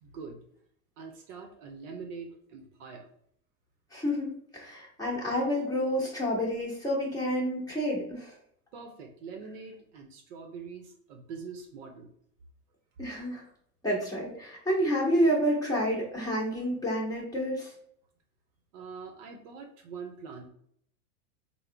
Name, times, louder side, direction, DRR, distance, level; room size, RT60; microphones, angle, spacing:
voice 1, 0.0-0.4 1.0-3.1 8.7-12.1 18.7-20.5, right 5 dB, 55° right, 3 dB, 0.7 m, -44 dB
voice 2, 3.9-8.3 13.0-13.4 13.8-17.7, equal, 10° left, -4 dB, 1.2 m, -29 dB
3.6 x 2.1 x 3.2 m, 0.66 s
hypercardioid pair, 105°, 45 cm